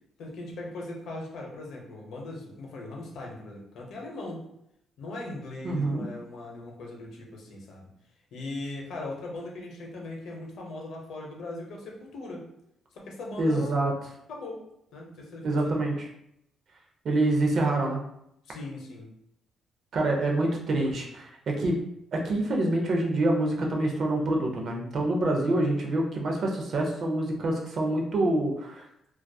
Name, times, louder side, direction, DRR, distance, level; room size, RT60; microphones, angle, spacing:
voice 1, 0.2-4.4 5.0-7.9 8.3-12.5 12.9-13.8 14.3-14.6 14.9-15.9 18.4-19.1, left 2 dB, 70° left, -1 dB, 0.6 m, -39 dB
voice 2, 5.6-6.1 13.4-13.9 15.4-15.9 17.0-18.0 19.9-21.8 22.1-28.8, right 2 dB, 45° right, 0 dB, 0.5 m, -26 dB
2.6 x 2.3 x 2.2 m, 0.76 s
cardioid pair, 160°, 0 cm